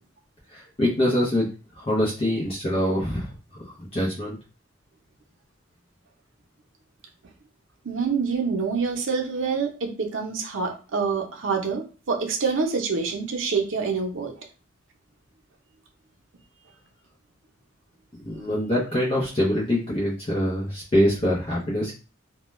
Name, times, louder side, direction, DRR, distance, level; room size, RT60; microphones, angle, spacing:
voice 1, 0.5-1.5 1.8-4.4 18.1-22.0, left 1 dB, 30° left, -5 dB, 0.6 m, -24 dB
voice 2, 7.8-14.3, right 5 dB, 80° right, 2 dB, 0.6 m, -26 dB
2.2 x 2.2 x 3.0 m, 0.33 s
head